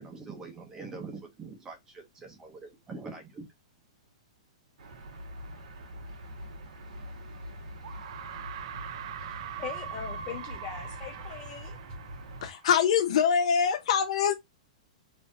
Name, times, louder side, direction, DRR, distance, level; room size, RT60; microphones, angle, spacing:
voice 1, 0.0-3.5, right 4 dB, 15° right, 0.7 m, -43 dB
sound 1, 4.8-12.5, equal, 90° right, 1.5 m, -44 dB
sound 2, 7.0-7.1 7.8-13.0, right 9 dB, 55° right, 0.5 m, -42 dB
voice 2, 9.2-11.8, left 8 dB, 25° left, 1.3 m, -41 dB
voice 3, 12.4-14.3, left 7 dB, 60° left, 0.6 m, -24 dB
3.5 x 2.5 x 2.6 m
hypercardioid pair, 160°, 4 cm